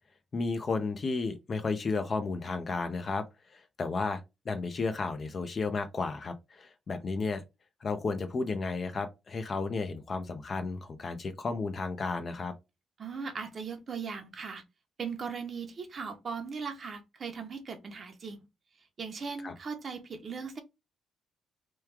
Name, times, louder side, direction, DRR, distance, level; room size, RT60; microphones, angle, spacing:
voice 1, 0.3-3.2 3.5-4.2 4.4-7.4 7.8-12.5 19.4-19.5, left 4 dB, 40° left, 0.6 m, -33 dB
voice 2, 13.0-14.6 15.0-18.5 19.0-20.6, right 5 dB, 45° right, 0.8 m, -38 dB
3.1 x 2.3 x 3.4 m
cardioid pair, 90°, 0 cm